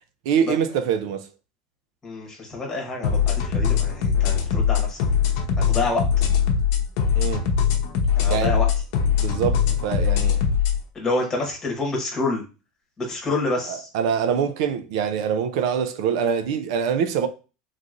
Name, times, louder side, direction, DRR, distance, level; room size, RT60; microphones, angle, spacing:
voice 1, 0.3-1.3 7.2-7.5 8.3-8.6 9.1-10.4 13.7-17.3, right 7 dB, 70° right, 0.4 m, -24 dB
voice 2, 2.0-5.0 5.6-6.1 8.2-8.7 10.9-12.4 13.0-13.9, left 2 dB, 15° left, 1.2 m, -27 dB
sound 1, 3.0-10.8, left 7 dB, 60° left, 0.7 m, -21 dB
3.8 x 3.0 x 2.5 m
supercardioid pair, 165°, 3 cm